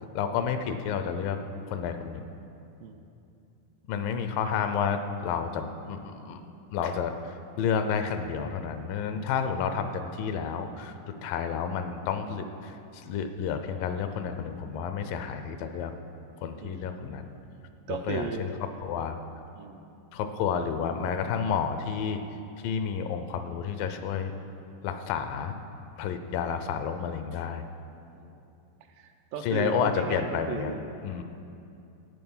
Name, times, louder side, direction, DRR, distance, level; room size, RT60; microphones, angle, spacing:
voice 1, 0.1-1.4 1.7-2.3 3.9-6.4 6.7-10.9 11.2-15.9 16.4-17.4 17.9-18.5 18.8-19.2 20.1-22.2 22.6-24.3 24.8-25.6 26.0-27.6 29.4-31.2, left 7 dB, 80° left, 8 dB, 2.3 m, -30 dB
voice 2, 17.9-18.5 19.6-19.8 20.6-20.7 28.1-28.4 28.9-30.9, right 5 dB, 80° right, 5 dB, 2.3 m, -36 dB
13.0 x 9.1 x 5.5 m, 2.7 s
omnidirectional pair, 4.1 m